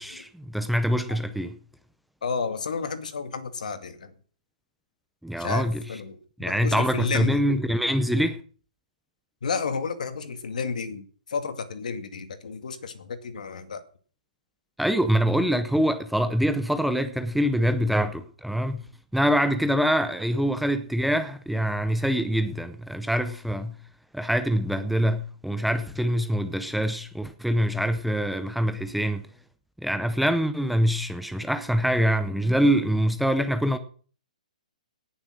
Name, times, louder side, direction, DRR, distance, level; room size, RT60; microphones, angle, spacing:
voice 1, 0.0-1.5 5.2-5.8 6.4-8.4 14.8-18.8 19.1-23.8 24.1-29.3 29.8-33.8, equal, ahead, 0.6 m, -24 dB
voice 2, 2.2-4.1 5.4-7.4 9.4-13.8 20.3-20.5, left 5 dB, 65° left, 2.2 m, -32 dB
18.5 x 7.1 x 6.3 m
hypercardioid pair, 170°, 4 cm